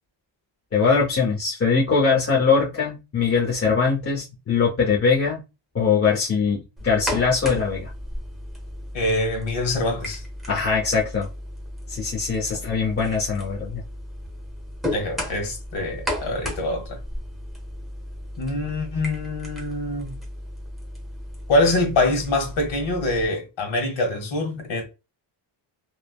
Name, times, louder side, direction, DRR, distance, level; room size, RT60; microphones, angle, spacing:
voice 1, 0.7-5.4 5.7-7.9 10.5-11.3 11.9-13.8, left 5 dB, 30° left, 0.6 m, -22 dB
sound 1, 6.8-23.3, equal, ahead, 0.8 m, -35 dB
voice 2, 8.9-10.2 14.9-17.0 18.4-20.2 21.5-24.8, left 2 dB, 80° left, 1.3 m, -24 dB
3.1 x 2.1 x 2.2 m
cardioid pair, 110°, 45 cm